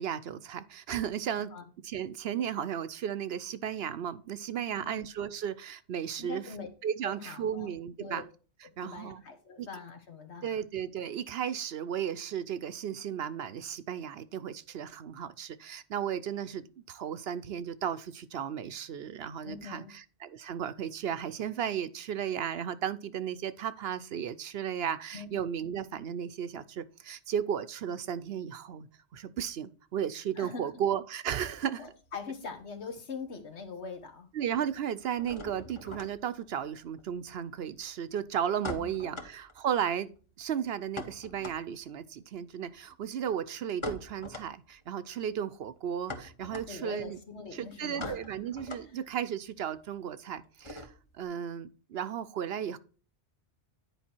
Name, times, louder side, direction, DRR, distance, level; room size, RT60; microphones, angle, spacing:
voice 1, 0.0-1.5 1.8-6.5 6.8-8.2 8.8-9.2 9.6-9.7 10.4-19.8 20.2-28.9 29.1-31.9 34.3-40.1 40.4-47.2 47.5-52.8, right 9 dB, 65° right, 0.8 m, -34 dB
voice 2, 4.7-5.0 6.2-6.7 7.0-7.7 8.0-8.2 8.6-10.6 19.4-19.9 25.1-25.3 30.3-30.8 31.8-34.3 38.7-39.2 46.7-48.2 48.8-48.9, left 5 dB, 70° left, 1.7 m, -43 dB
sound 1, 31.6-33.0 33.3-34.0 34.2-51.2, left 2 dB, 25° left, 1.1 m, -45 dB
10.0 x 4.9 x 4.4 m
omnidirectional pair, 1.2 m